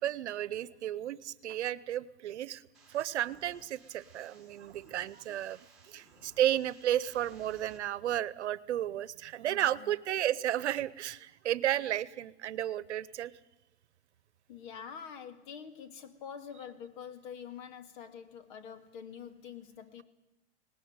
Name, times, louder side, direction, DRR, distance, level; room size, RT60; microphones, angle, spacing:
voice 1, 0.0-2.6 2.9-13.3, right 12 dB, 80° right, 19 dB, 1.0 m, -33 dB
sound 1, 2.7-7.8, right 3 dB, ahead, 6.5 m, -60 dB
voice 2, 9.5-9.9 14.5-20.0, left 7 dB, 45° left, 9 dB, 2.1 m, -46 dB
18.5 x 17.5 x 9.6 m, 0.96 s
hypercardioid pair, 150°, 34 cm